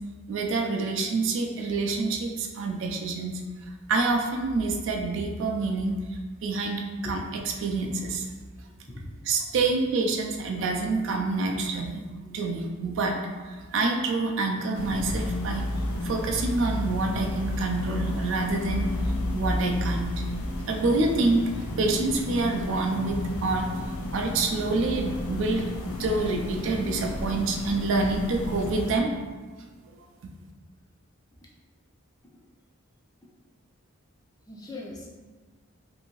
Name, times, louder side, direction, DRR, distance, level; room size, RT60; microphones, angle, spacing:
voice 1, 0.3-3.3 3.9-6.0 6.4-7.2 7.6-8.2 9.3-12.0 12.3-13.2 13.7-15.7 16.0-18.9 19.3-20.1 20.7-23.7 24.1-25.6 26.0-29.1, right 3 dB, 60° right, 2 dB, 0.3 m, -27 dB
voice 2, 12.0-12.5 34.5-35.1, left 2 dB, 15° left, -3 dB, 0.3 m, -41 dB
sound 1, 14.7-29.0, left 1 dB, 80° left, 0.4 m, -32 dB
2.6 x 2.6 x 2.9 m, 1.3 s
head